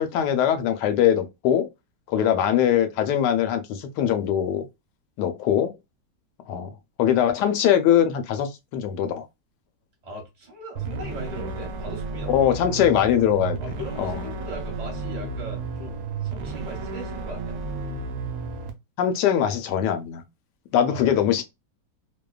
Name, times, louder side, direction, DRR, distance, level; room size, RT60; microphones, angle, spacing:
voice 1, 0.0-1.7 2.1-4.6 5.2-5.7 6.5-6.7 7.0-9.3 12.3-13.6 14.0-14.2 19.0-20.2 20.7-21.4, left 9 dB, 75° left, 1.1 m, -22 dB
voice 2, 10.0-12.6 13.6-17.6 20.9-21.3, right 1 dB, 30° right, 1.0 m, -39 dB
sound 1, 10.8-18.7, right 3 dB, 70° right, 1.0 m, -32 dB
2.8 x 2.1 x 2.3 m
omnidirectional pair, 1.9 m